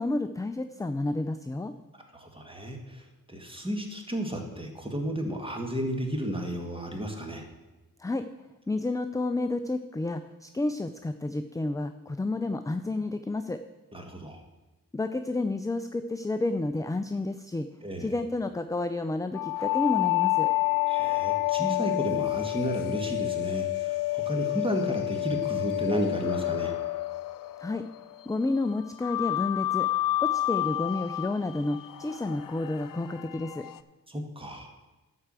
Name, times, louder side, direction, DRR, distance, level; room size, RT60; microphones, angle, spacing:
voice 1, 0.0-1.7 8.0-8.2 8.7-13.6 14.9-17.7 18.0-20.5 27.6-27.8 28.3-29.9 30.2-33.7, left 2 dB, 10° left, 9 dB, 0.4 m, -30 dB
voice 2, 2.1-3.0 3.3-7.4 13.9-14.4 17.8-18.1 20.9-26.7 34.1-34.7, right 1 dB, 15° right, 3 dB, 1.9 m, -32 dB
sound 1, 19.3-28.1 29.0-33.8, left 17 dB, 70° left, 0.5 m, -29 dB
11.5 x 4.7 x 7.6 m, 1.1 s
cardioid pair, 65°, 34 cm